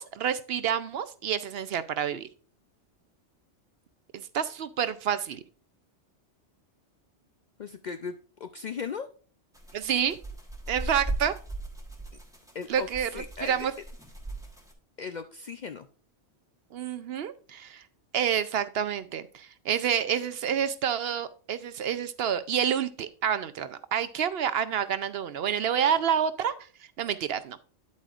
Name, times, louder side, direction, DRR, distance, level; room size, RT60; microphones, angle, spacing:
voice 1, 0.0-2.3 4.1-5.4 9.7-10.2 10.7-11.3 12.7-13.1 13.4-13.7 16.7-17.8 18.1-26.5 27.0-27.6, right 8 dB, 65° right, 12 dB, 0.7 m, -28 dB
voice 2, 7.6-9.1 12.5-13.7 15.0-15.9, left 5 dB, 60° left, 8 dB, 0.5 m, -37 dB
rotating sprinkler, 9.5-14.7, right 2 dB, 5° right, 1.1 m, -38 dB
9.4 x 8.3 x 2.4 m, 0.39 s
omnidirectional pair, 1.2 m